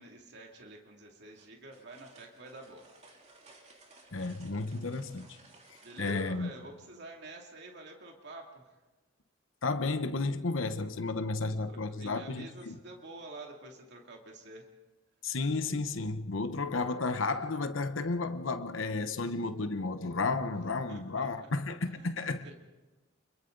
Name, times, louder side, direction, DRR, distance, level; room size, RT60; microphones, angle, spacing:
voice 1, 0.0-2.9 5.8-8.8 11.4-14.7 20.9-21.5 21.9-22.2 22.4-22.5, right 2 dB, 60° right, 2.6 m, -48 dB
sound 1, 1.4-6.3, right 3 dB, 35° right, 3.0 m, -58 dB
voice 2, 4.1-5.4 6.0-6.5 9.6-12.8 15.2-22.4, left 3 dB, 85° left, 1.0 m, -32 dB
30.0 x 22.5 x 3.9 m
head